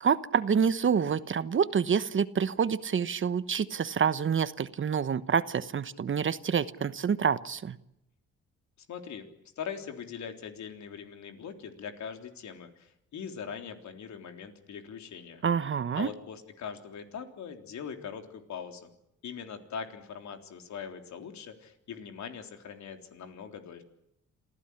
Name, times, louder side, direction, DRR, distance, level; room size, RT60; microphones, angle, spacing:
voice 1, 0.0-7.8 15.4-16.1, right 7 dB, 40° right, 14 dB, 1.1 m, -27 dB
voice 2, 8.9-9.3 9.6-15.4 15.9-18.9 19.2-23.8, left 7 dB, 70° left, 6 dB, 3.7 m, -41 dB
27.0 x 15.5 x 10.0 m, 0.81 s
cardioid pair, 90°, 30 cm